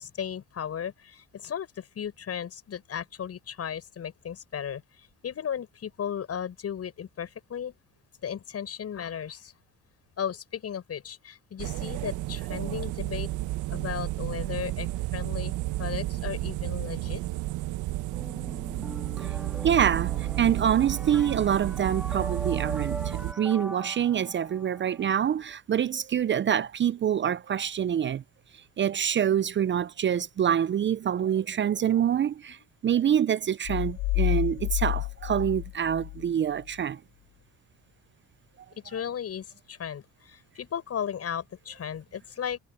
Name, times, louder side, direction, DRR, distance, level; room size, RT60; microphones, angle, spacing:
voice 1, 0.0-4.8 5.2-7.7 8.2-9.5 10.2-13.3 13.7-15.5 15.8-17.2 31.2-31.3 32.5-32.6 38.8-42.6, left 8 dB, 50° left, 7.7 m, -35 dB
sound 1, 11.6-23.3, right 16 dB, 75° right, 1.2 m, -32 dB
sound 2, 18.1-25.1, right 1 dB, 5° right, 3.8 m, -41 dB
voice 2, 19.6-28.2 28.8-37.0, right 9 dB, 40° right, 0.6 m, -26 dB
sound 3, 33.7-36.3, left 20 dB, 70° left, 0.5 m, -29 dB
supercardioid pair, 75°, 30 cm